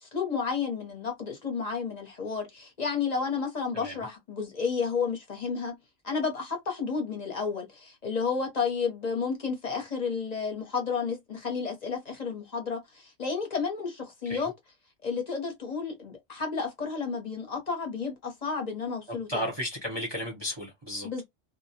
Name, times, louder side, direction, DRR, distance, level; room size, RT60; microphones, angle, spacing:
voice 1, 0.0-5.7 6.0-14.5 15.0-19.5 21.0-21.2, left 5 dB, 40° left, 0.7 m, -31 dB
voice 2, 19.1-21.1, equal, 25° right, 0.6 m, -34 dB
2.2 x 2.1 x 2.7 m
omnidirectional pair, 1.3 m